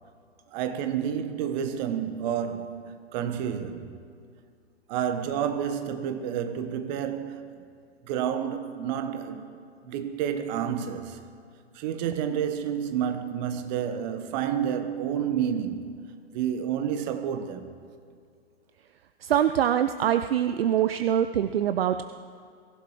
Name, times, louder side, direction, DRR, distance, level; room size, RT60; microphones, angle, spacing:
voice 1, 0.5-4.0 4.9-7.5 8.0-9.5 9.8-11.2 11.7-17.7, right 8 dB, 40° right, 1.4 m, -30 dB
voice 2, 19.2-22.1, right 10 dB, 65° right, 0.6 m, -24 dB
23.0 x 15.5 x 3.2 m
figure-of-eight pair, 100°, 32 cm